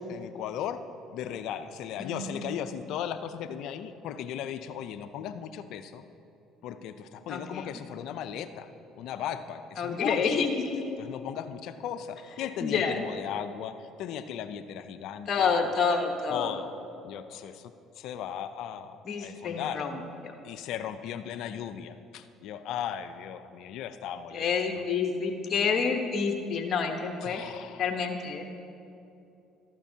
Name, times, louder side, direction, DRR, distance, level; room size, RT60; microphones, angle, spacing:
voice 1, 0.1-0.8 1.1-6.0 6.6-8.7 9.0-10.5 11.0-15.5 16.3-16.7 17.0-19.9 20.4-24.5 27.2-27.8, left 9 dB, 70° left, 11 dB, 0.4 m, -37 dB
voice 2, 2.0-2.4 7.3-7.7 9.8-10.8 12.6-12.9 15.3-16.6 19.1-19.9 20.2-20.3 24.3-27.4 27.8-28.4, left 5 dB, 50° left, 4 dB, 1.0 m, -28 dB
13.5 x 11.5 x 2.8 m, 2.7 s
supercardioid pair, 75°, 0 cm